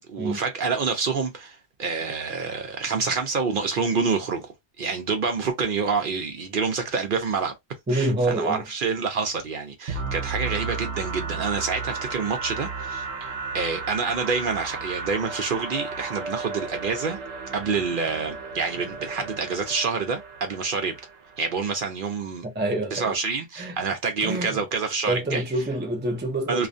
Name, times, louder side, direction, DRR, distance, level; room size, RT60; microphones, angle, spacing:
voice 1, 0.0-7.5 7.9-17.2 17.5-21.0 21.4-22.4 22.9-25.4 26.5-26.7, right 5 dB, 60° right, 0.7 m, -27 dB
voice 2, 7.9-8.6 22.4-23.1 23.6-23.9 24.2-24.6 25.1-26.7, right 1 dB, 15° right, 0.4 m, -27 dB
sound 1, 9.9-21.6, right 4 dB, 85° right, 0.9 m, -34 dB
2.4 x 2.1 x 2.5 m
omnidirectional pair, 1.1 m